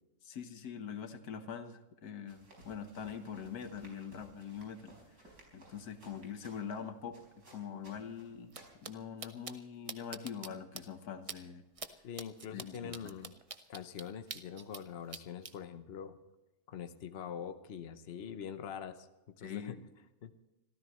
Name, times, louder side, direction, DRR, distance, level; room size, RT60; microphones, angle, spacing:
voice 1, 0.2-4.9 5.5-7.2 7.5-8.5 8.8-11.6 12.5-13.1 19.4-19.8, left 7 dB, 90° left, 8 dB, 1.7 m, -43 dB
sound 1, 2.3-9.0, right 1 dB, 85° right, 5.3 m, -59 dB
sound 2, 8.5-8.6 8.8-8.9 9.2-9.5 9.9-10.5 10.8-10.9 11.3-11.4 11.8-11.9 12.2-14.8 15.1-15.5, right 5 dB, 35° right, 0.5 m, -44 dB
voice 2, 12.0-13.3 13.7-16.2 16.7-19.1 19.4-19.8 20.2-20.3, left 8 dB, 50° left, 9 dB, 1.0 m, -44 dB
25.5 x 14.5 x 3.1 m, 1.0 s
omnidirectional pair, 1.6 m